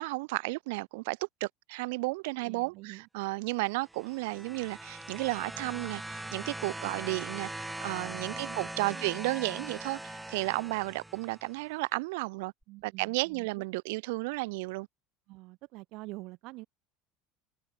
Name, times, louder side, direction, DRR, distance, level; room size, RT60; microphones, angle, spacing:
voice 1, 0.0-12.5 12.8-14.9, right 25 dB, 75° right, 2.7 m, -33 dB
voice 2, 2.4-3.1 6.8-7.0 8.0-9.1 12.7-13.7 15.3-16.7, right 22 dB, 50° right, 2.2 m, -47 dB
Bagpipe Chorus, 3.8-11.6 12.6-12.7, right 1 dB, 5° right, 0.6 m, -41 dB
cardioid pair, 175°, 0 cm